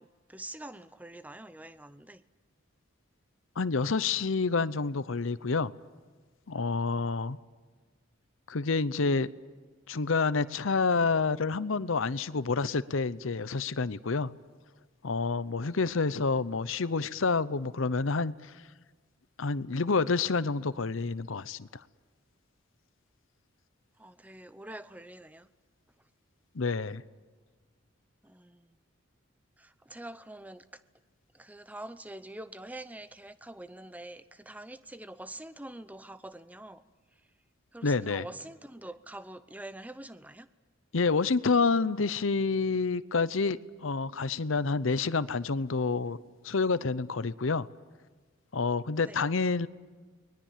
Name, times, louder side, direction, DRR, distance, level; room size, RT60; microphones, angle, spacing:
voice 1, 0.0-2.2 24.0-25.5 28.2-28.6 29.6-30.6 31.3-36.8 37.7-40.5 49.1-49.2, right 1 dB, 5° right, 13 dB, 0.7 m, -45 dB
voice 2, 3.6-5.7 6.5-7.4 8.5-9.3 9.9-14.3 15.0-18.5 19.4-21.8 26.5-27.0 37.8-38.3 40.9-46.2 46.4-47.7 48.5-49.7, left 4 dB, 75° left, 16 dB, 0.7 m, -28 dB
29.0 x 21.5 x 7.5 m, 1.4 s
head